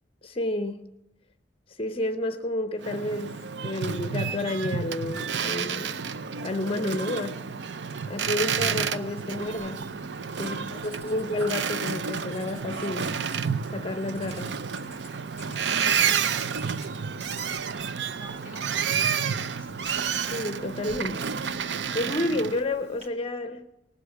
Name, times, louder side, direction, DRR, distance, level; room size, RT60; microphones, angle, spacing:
voice 1, 0.2-0.9 1.7-6.1 6.4-7.4 8.1-9.9 10.4-13.1 13.7-14.6 20.3-21.3 21.6-23.6, left 2 dB, 30° left, 0.7 m, -30 dB
Boat Water vehicle, 2.8-22.6, right 7 dB, 75° right, 0.6 m, -30 dB
Writing, 8.1-23.1, right 1 dB, 40° right, 3.1 m, -52 dB
voice 2, 10.4-11.2 15.6-19.9, equal, 10° right, 1.8 m, -51 dB
19.0 x 8.3 x 9.2 m
head